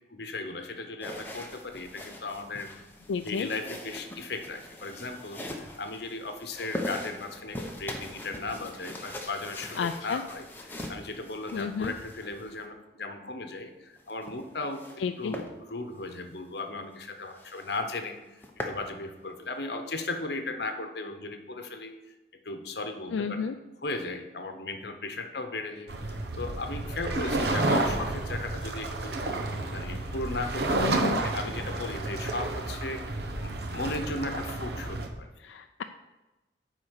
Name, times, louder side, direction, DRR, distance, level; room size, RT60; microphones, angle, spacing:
voice 1, 0.1-2.7 3.2-21.9 22.4-23.4 23.8-29.2 29.7-35.3, left 2 dB, 65° left, 6 dB, 0.9 m, -37 dB
sound 1, 1.0-12.7 14.0-15.0 15.3-15.5 16.0-16.2 16.6-16.7 16.9-17.0 17.3-17.8 18.2-18.8, left 1 dB, 10° left, 0.8 m, -41 dB
voice 2, 3.1-3.5 9.8-10.2 11.5-11.9 15.0-15.3 23.1-23.5 30.8-31.2 35.4-35.8, left 5 dB, 85° left, 7 dB, 0.4 m, -31 dB
sound 2, 25.9-35.1, right 2 dB, 60° right, 1.0 m, -31 dB
9.6 x 4.1 x 6.4 m, 1.1 s
head